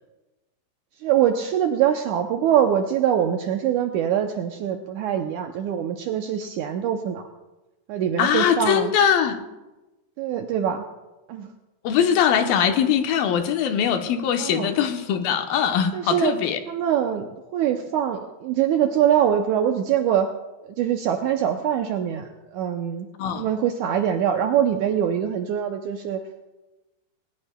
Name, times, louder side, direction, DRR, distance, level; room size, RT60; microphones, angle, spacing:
voice 1, 1.0-7.2 7.9-8.9 10.2-10.8 11.3-11.5 14.4-14.7 15.9-16.3 16.7-20.3 20.6-23.1 23.4-26.2, right 9 dB, 80° right, 5 dB, 1.8 m, -23 dB
voice 2, 8.2-9.4 11.8-16.6 23.2-23.5, left 8 dB, 85° left, 6 dB, 2.7 m, -21 dB
19.0 x 19.0 x 2.2 m, 1.1 s
omnidirectional pair, 4.1 m